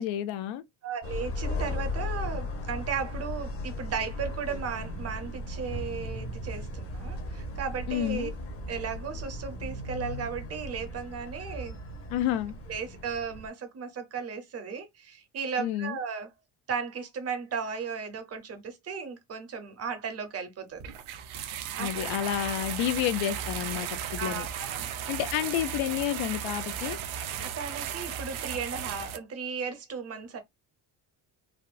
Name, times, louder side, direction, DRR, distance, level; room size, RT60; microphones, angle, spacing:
voice 1, 0.0-0.6 7.9-8.3 12.1-12.5 15.6-16.0 21.8-24.5 25.1-27.0, left 12 dB, 85° left, 0.6 m, -30 dB
voice 2, 0.8-8.3 8.7-11.8 12.7-16.3 16.7-20.9 21.8-21.9 24.2-24.9 27.6-30.4, right 6 dB, 35° right, 0.6 m, -35 dB
sound 1, 1.0-13.5, left 1 dB, 30° left, 0.7 m, -36 dB
sound 2, 20.8-29.2, right 9 dB, 80° right, 0.7 m, -35 dB
3.5 x 2.6 x 2.3 m
cardioid pair, 165°, 46 cm